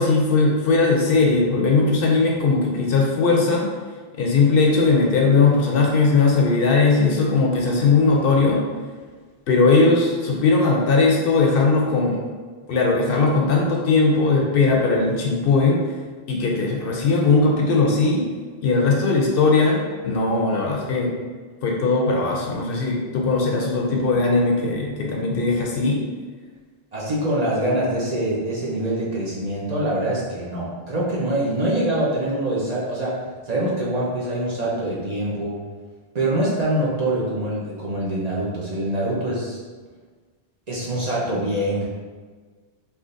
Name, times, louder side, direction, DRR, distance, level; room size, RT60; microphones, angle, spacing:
voice 1, 0.0-3.7 4.2-8.6 9.5-12.2 12.7-15.8 16.3-18.3 18.6-21.1 21.6-26.0, left 3 dB, 65° left, -1 dB, 0.7 m, -19 dB
voice 2, 26.9-35.6 36.1-39.6 40.7-41.8, right 1 dB, 45° right, -6 dB, 0.7 m, -24 dB
3.6 x 2.8 x 2.5 m, 1.4 s
omnidirectional pair, 1.1 m